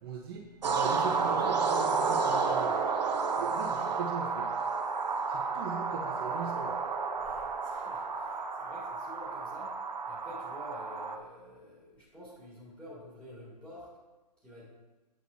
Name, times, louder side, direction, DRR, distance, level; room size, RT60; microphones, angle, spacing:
voice 1, 0.0-2.7 3.4-4.5 5.3-6.7, right 5 dB, 35° right, -1 dB, 1.1 m, -39 dB
sound 1, 0.6-11.2, right 4 dB, 85° right, 0.9 m, -31 dB
voice 2, 7.2-13.9 14.4-14.7, left 1 dB, 5° left, -9 dB, 2.2 m, -49 dB
8.3 x 7.7 x 2.8 m, 1.1 s
hypercardioid pair, 150°, 21 cm